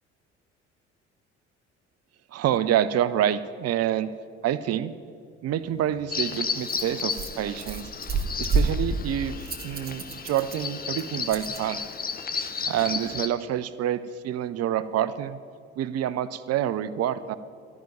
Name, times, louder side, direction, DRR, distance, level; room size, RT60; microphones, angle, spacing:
voice 1, 2.3-4.1 4.4-4.9 5.4-7.9 8.4-11.8 12.7-15.4 15.8-17.4, right 11 dB, 45° right, 15 dB, 0.7 m, -27 dB
Rattle, 5.6-11.6, right 3 dB, 25° right, 1.8 m, -31 dB
Bird vocalization bird call bird song, 6.1-13.3, left 5 dB, 25° left, 0.9 m, -33 dB
12.5 x 6.0 x 9.5 m, 2.3 s
figure-of-eight pair, 55°, 35 cm